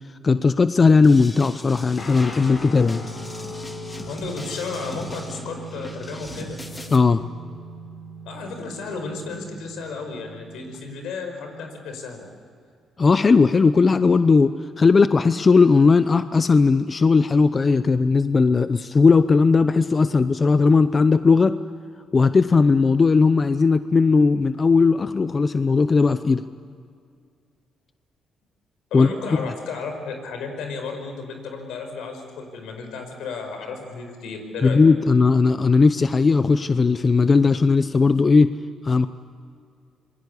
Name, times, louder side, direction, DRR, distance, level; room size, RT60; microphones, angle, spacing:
voice 1, 0.2-3.0 6.9-7.2 13.0-21.6 22.1-26.4 28.9-29.1 34.6-38.5 38.8-39.1, left 4 dB, 35° left, 12 dB, 0.7 m, -17 dB
sound 1, 1.0-7.0, left 1 dB, 15° left, 2.7 m, -40 dB
Guitar, 2.0-10.8, right 1 dB, 50° left, 5.1 m, -38 dB
voice 2, 4.1-6.6 8.2-12.3 28.9-34.8, left 4 dB, 85° left, 5 dB, 5.2 m, -33 dB
27.0 x 22.0 x 8.4 m, 2.3 s
cardioid pair, 90°, 0 cm